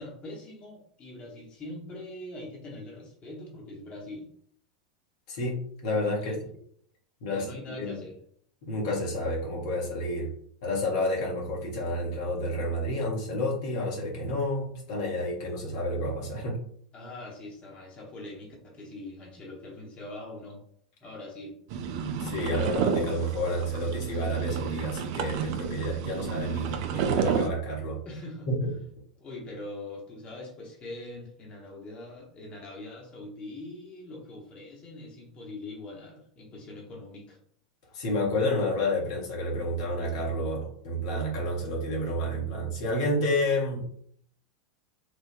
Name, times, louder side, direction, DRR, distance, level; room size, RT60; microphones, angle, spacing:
voice 1, 0.0-4.3 6.2-6.4 7.3-8.2 16.9-20.6 21.0-21.6 28.0-28.5 29.2-37.4, left 2 dB, 30° left, -2 dB, 0.9 m, -42 dB
voice 2, 5.3-6.4 7.2-8.0 8.6-10.3 10.6-16.6 22.2-28.0 28.5-28.7 37.9-43.8, left 1 dB, 60° left, -2 dB, 0.9 m, -30 dB
sound 1, 21.7-27.5, right 6 dB, 55° right, 0.3 m, -31 dB
3.3 x 2.2 x 2.5 m, 0.63 s
figure-of-eight pair, 90°, 4 cm